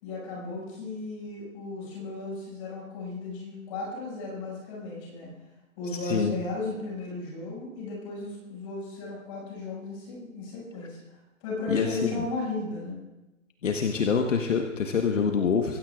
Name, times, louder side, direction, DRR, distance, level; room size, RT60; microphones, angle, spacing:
voice 1, 0.0-5.3 5.8-13.0, left 2 dB, 25° left, -5 dB, 6.1 m, -35 dB
voice 2, 6.0-6.3 11.7-12.2 13.6-15.8, left 6 dB, 65° left, 3 dB, 1.4 m, -25 dB
24.5 x 15.5 x 2.5 m, 1.0 s
hypercardioid pair, 170°, 41 cm